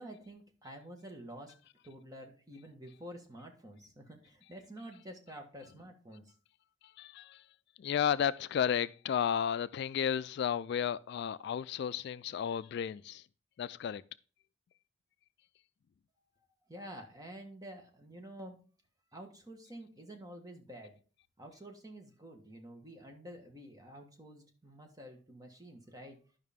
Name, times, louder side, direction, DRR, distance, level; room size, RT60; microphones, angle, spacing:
voice 1, 0.0-1.6 1.8-6.3 16.7-18.7 19.1-21.0 21.4-26.2, right 1 dB, 20° right, 1.5 m, -49 dB
voice 2, 6.8-7.5 7.8-13.3 13.6-14.0, left 8 dB, 60° left, 0.3 m, -33 dB
11.0 x 5.6 x 3.6 m
head